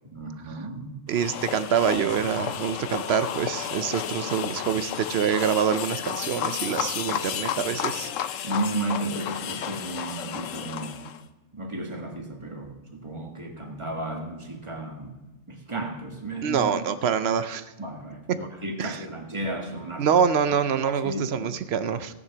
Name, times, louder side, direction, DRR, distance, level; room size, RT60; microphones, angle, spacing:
voice 1, 0.0-1.0 8.4-11.0 11.5-15.1 15.5-16.8 17.8-20.1 20.8-21.5, right 2 dB, 25° right, 2 dB, 1.5 m, -33 dB
sound 1, 1.1-11.2, left 9 dB, 85° left, 1.0 m, -32 dB
voice 2, 1.1-8.1 16.4-17.6 18.8-19.0 20.0-22.1, right 7 dB, 60° right, 13 dB, 0.8 m, -25 dB
17.0 x 6.7 x 5.8 m, 1.1 s
omnidirectional pair, 1.3 m